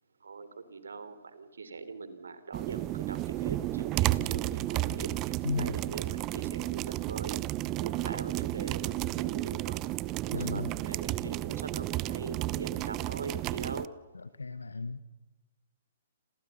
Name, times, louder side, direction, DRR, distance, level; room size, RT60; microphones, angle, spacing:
voice 1, 0.2-7.4 7.8-9.8 10.3-13.9, right 4 dB, 70° right, 13 dB, 3.4 m, -42 dB
sound 1, 2.5-13.9, right 16 dB, 30° right, 0.8 m, -32 dB
voice 2, 5.4-5.8 10.3-10.7 14.1-15.0, left 4 dB, 80° left, 15 dB, 1.1 m, -35 dB
29.0 x 28.0 x 5.6 m, 1.1 s
figure-of-eight pair, 120°, 0 cm